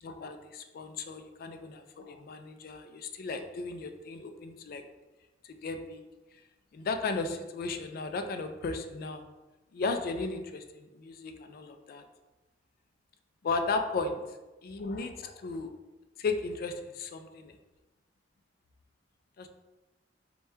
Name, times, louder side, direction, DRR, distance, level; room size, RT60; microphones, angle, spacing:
voice 1, 0.0-4.8 5.6-6.0 6.7-9.2 9.7-12.0 13.4-14.2 14.6-15.7 16.2-17.5 19.4-19.5, left 3 dB, 50° left, 7 dB, 0.3 m, -35 dB
4.3 x 2.2 x 3.4 m, 1.1 s
head